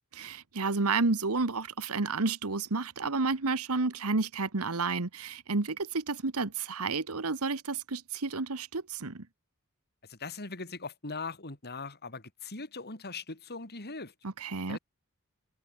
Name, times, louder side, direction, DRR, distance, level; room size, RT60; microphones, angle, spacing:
voice 1, 0.1-9.3 14.2-14.8, right 3 dB, 75° right, 1.4 m, -31 dB
voice 2, 10.0-14.1 14.7-14.8, left 3 dB, 45° left, 4.0 m, -40 dB
head